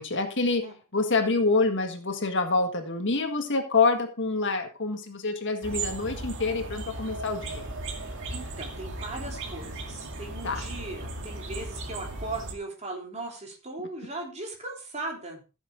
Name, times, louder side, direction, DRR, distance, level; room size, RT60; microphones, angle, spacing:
voice 1, 0.0-0.6 0.9-7.7 10.4-10.6, left 3 dB, 55° left, 6 dB, 1.7 m, -26 dB
sound 1, 5.6-12.5, right 2 dB, 60° right, 2.3 m, -36 dB
voice 2, 8.3-15.4, right 2 dB, 30° right, 1 dB, 3.4 m, -38 dB
14.5 x 7.3 x 3.8 m, 0.31 s
head